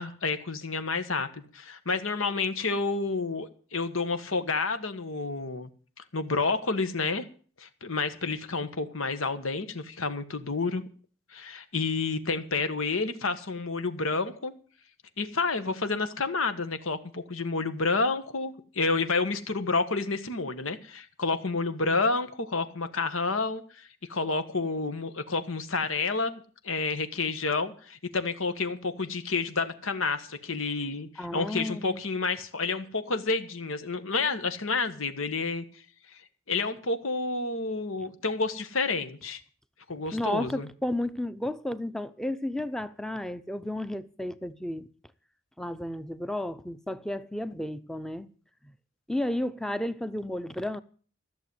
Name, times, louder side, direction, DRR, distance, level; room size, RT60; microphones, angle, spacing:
voice 1, 0.0-5.7 6.1-7.2 7.6-10.8 11.3-14.5 15.2-35.6 36.1-36.2 36.5-39.4 39.9-40.7, left 3 dB, 85° left, 1.5 m, -29 dB
voice 2, 31.2-32.0 40.1-44.9 45.6-48.3 48.6-48.7 49.1-50.8, left 1 dB, 5° left, 0.6 m, -32 dB
14.5 x 7.0 x 9.6 m
head